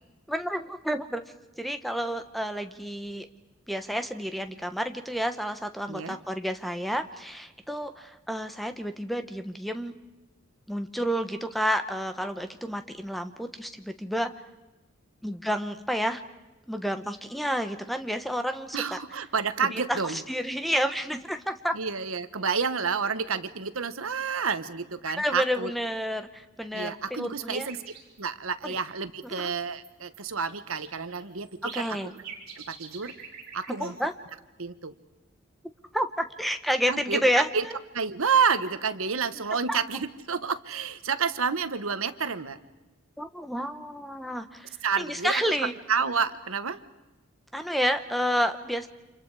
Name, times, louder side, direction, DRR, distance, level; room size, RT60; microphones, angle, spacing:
voice 1, 0.3-1.2 1.6-3.3 3.7-9.9 10.7-14.3 15.2-16.2 16.7-19.0 19.7-21.8 25.2-27.7 28.6-28.7 29.3-29.5 31.7-32.1 33.8-34.1 35.9-37.7 39.7-39.8 43.2-45.7 47.5-48.9, equal, ahead, 8 dB, 1.1 m, -30 dB
voice 2, 18.7-20.2 21.7-25.7 26.7-27.8 28.2-32.0 32.5-33.1 33.5-34.0 34.6-34.9 36.9-37.3 37.5-37.7 37.9-42.6 44.8-45.4 45.9-46.8, right 5 dB, 75° right, 12 dB, 1.2 m, -29 dB
sound 1, 27.5-28.2 28.6-28.7 29.2-29.4 29.8-34.3, right 6 dB, 50° right, 5.1 m, -46 dB
30.0 x 27.5 x 4.9 m, 1.1 s
head